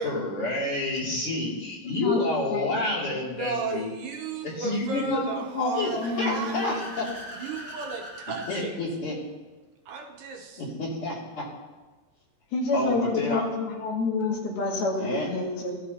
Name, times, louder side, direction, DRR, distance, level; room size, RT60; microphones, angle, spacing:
voice 1, 0.0-3.9 4.4-5.1 5.7-7.1 8.5-9.2 10.6-11.5 12.7-13.5 15.0-15.3, left 2 dB, 40° left, -5 dB, 3.2 m, -29 dB
voice 2, 2.5-3.0 4.8-6.7 12.5-15.8, left 3 dB, 85° left, -2 dB, 4.1 m, -28 dB
voice 3, 3.2-6.0 6.2-6.9 7.4-8.8 9.9-10.6, right 4 dB, 75° right, 2 dB, 2.3 m, -34 dB
Car / Accelerating revving vroom, 5.4-8.6, equal, 20° right, 1.6 m, -42 dB
16.5 x 11.5 x 2.9 m, 1.2 s
omnidirectional pair, 4.2 m